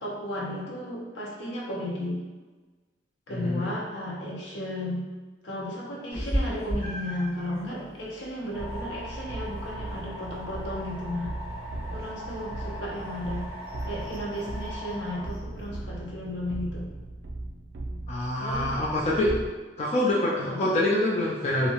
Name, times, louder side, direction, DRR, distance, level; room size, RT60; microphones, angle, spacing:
voice 1, 0.0-2.2 3.3-5.1 5.4-11.3 11.9-13.5 13.9-16.9 18.4-18.8 20.5-20.7, left 1 dB, 75° left, -4 dB, 0.6 m, -34 dB
voice 2, 3.3-3.7 18.1-19.3 19.8-21.7, left 1 dB, 35° left, -5 dB, 0.3 m, -26 dB
Meow, 6.1-15.8, equal, 10° left, 1.4 m, -38 dB
sound 1, 8.5-15.3, equal, 10° right, 1.1 m, -41 dB
sound 2, 8.6-19.5, right 2 dB, 85° right, 0.4 m, -38 dB
2.7 x 2.0 x 2.8 m, 1.3 s
head